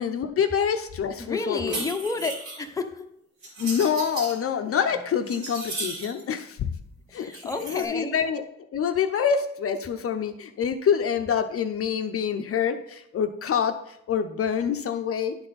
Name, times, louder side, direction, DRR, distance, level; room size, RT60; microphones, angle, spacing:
voice 1, 0.0-1.8 3.6-6.7 7.1-8.4 8.7-15.4, left 7 dB, 50° left, 7 dB, 0.6 m, -26 dB
voice 2, 1.2-3.1 7.1-8.1, left 3 dB, 10° left, 4 dB, 0.7 m, -30 dB
sound 1, 1.5-2.6 3.4-4.4 4.9-6.2 7.3-7.8, right 2 dB, 70° right, 2.5 m, -36 dB
10.5 x 4.3 x 4.0 m, 0.76 s
cardioid pair, 90°, 30 cm